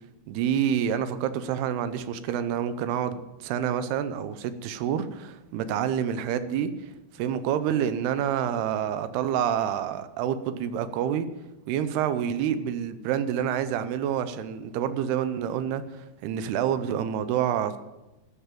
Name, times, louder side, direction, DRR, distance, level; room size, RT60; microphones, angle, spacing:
voice 1, 0.3-6.7 7.1-11.3 11.7-17.8, right 9 dB, 85° right, 12 dB, 2.8 m, -28 dB
13.0 x 6.9 x 8.9 m, 1.0 s
omnidirectional pair, 4.5 m